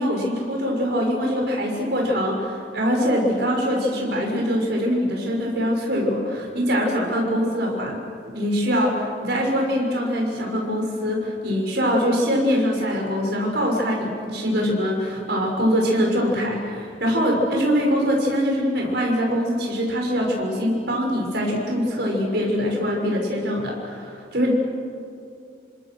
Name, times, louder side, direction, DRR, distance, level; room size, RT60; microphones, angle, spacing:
voice 1, 0.0-8.0 8.3-24.5, equal, 60° right, -1 dB, 6.6 m, -23 dB
29.5 x 25.5 x 6.5 m, 2.4 s
head